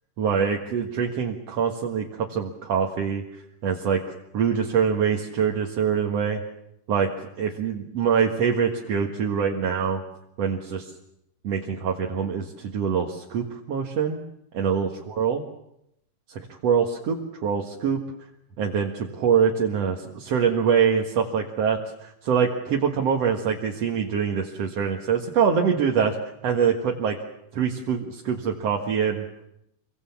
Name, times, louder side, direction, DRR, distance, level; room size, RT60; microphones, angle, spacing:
voice 1, 0.2-4.0 4.3-6.4 6.9-10.0 10.4-10.9 11.4-14.2 14.5-15.4 16.3-18.0 18.6-26.2 26.4-27.2 27.5-29.2, right 7 dB, 50° right, 1 dB, 2.3 m, -24 dB
27.5 x 23.5 x 7.3 m, 0.79 s
omnidirectional pair, 4.5 m